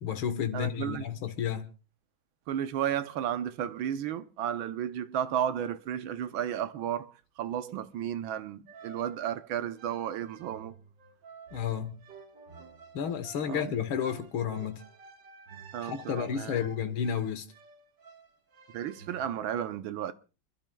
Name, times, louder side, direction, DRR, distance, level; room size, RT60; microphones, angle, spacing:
voice 1, 0.0-1.7 11.5-12.0 12.9-14.8 15.8-17.5, left 8 dB, 90° left, 2.0 m, -31 dB
voice 2, 0.5-1.1 2.5-10.8 13.4-13.8 15.7-16.7 18.7-20.1, right 10 dB, 80° right, 1.6 m, -33 dB
sound 1, 8.7-19.3, right 6 dB, 65° right, 2.3 m, -52 dB
28.5 x 12.0 x 2.3 m
omnidirectional pair, 2.2 m